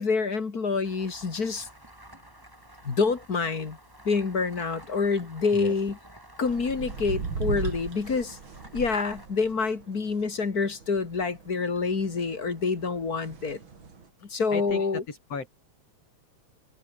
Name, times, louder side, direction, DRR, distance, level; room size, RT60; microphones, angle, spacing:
voice 1, 0.0-1.7 2.8-3.8 4.0-6.0 6.4-8.4 8.7-13.6 14.3-15.0, left 4 dB, 35° left, 2.5 m, -27 dB
sound 1, 0.8-10.2, right 1 dB, 5° right, 4.6 m, -51 dB
sound 2, 6.4-14.1, right 5 dB, 40° right, 3.5 m, -38 dB
voice 2, 14.5-15.5, left 4 dB, 55° left, 5.8 m, -35 dB
omnidirectional pair, 3.3 m